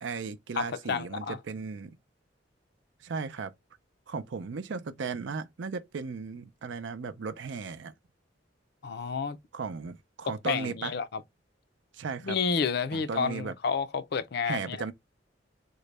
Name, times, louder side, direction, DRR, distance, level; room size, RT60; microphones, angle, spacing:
voice 1, 0.0-2.0 3.0-3.5 4.1-7.9 9.5-10.9 11.9-12.4 12.9-13.5 14.4-14.9, right 5 dB, 75° right, 0.5 m, -36 dB
voice 2, 0.5-1.4 8.8-9.4 10.3-11.2 12.2-14.8, left 5 dB, 60° left, 0.4 m, -30 dB
3.8 x 2.1 x 3.2 m
head